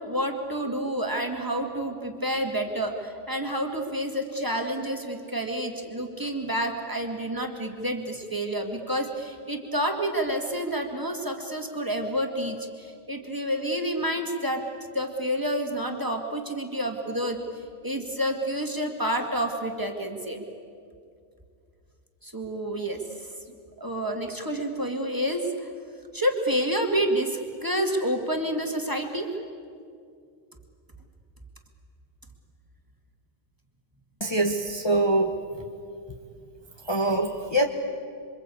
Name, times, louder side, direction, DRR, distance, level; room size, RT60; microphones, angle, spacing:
voice 1, 0.0-14.6 14.9-17.4 17.8-20.4 22.2-23.3 23.8-25.7 26.1-29.3, equal, 15° right, 3 dB, 2.2 m, -29 dB
voice 2, 34.2-35.3 36.9-37.7, right 1 dB, 20° left, 2 dB, 1.3 m, -24 dB
28.0 x 24.0 x 8.5 m, 2.4 s
omnidirectional pair, 1.2 m